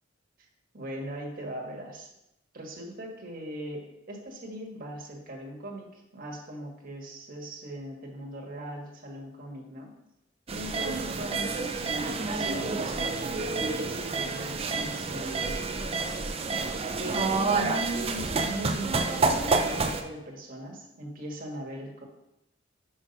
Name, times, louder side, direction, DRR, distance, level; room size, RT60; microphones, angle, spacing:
voice 1, 0.7-2.1 2.5-9.9 10.5-16.3 17.0-22.0, right 1 dB, 50° right, -1 dB, 1.5 m, -39 dB
sound 1, 10.5-20.0, right 4 dB, 30° right, 0.5 m, -29 dB
5.6 x 4.8 x 5.2 m, 0.86 s
head